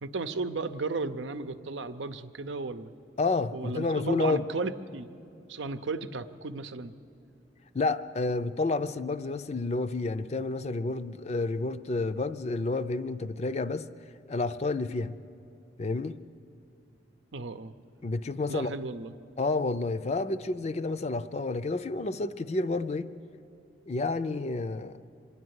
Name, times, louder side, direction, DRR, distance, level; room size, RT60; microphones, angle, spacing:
voice 1, 0.0-2.9 3.5-5.1 5.5-6.9 17.3-17.7 18.5-19.1, right 3 dB, 85° right, 10 dB, 0.7 m, -34 dB
voice 2, 3.2-4.5 7.7-13.9 14.3-15.2 15.8-16.2 18.0-18.7 19.4-23.1 23.9-25.0, left 3 dB, 35° left, 11 dB, 0.5 m, -30 dB
25.0 x 11.0 x 9.5 m, 2.7 s
head